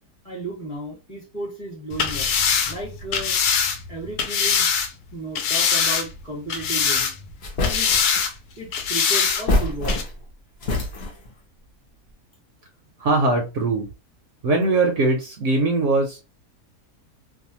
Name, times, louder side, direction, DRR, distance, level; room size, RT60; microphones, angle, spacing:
voice 1, 0.2-2.3 2.7-3.4 3.9-7.1 7.7-8.0 8.6-10.0, right 2 dB, 25° left, -3 dB, 1.1 m, -34 dB
sound 1, 1.9-4.9 5.4-6.2 6.5-7.3 7.6-8.3 8.7-9.4 9.9-10.0, left 6 dB, 85° left, 1.1 m, -22 dB
sound 2, 7.4-8.2 9.2-10.3 10.6-11.3, left 2 dB, 55° left, 0.8 m, -25 dB
voice 2, 13.0-13.9 14.4-16.3, right 2 dB, 65° right, 3 dB, 0.8 m, -21 dB
2.6 x 2.2 x 2.8 m, 0.28 s
omnidirectional pair, 1.6 m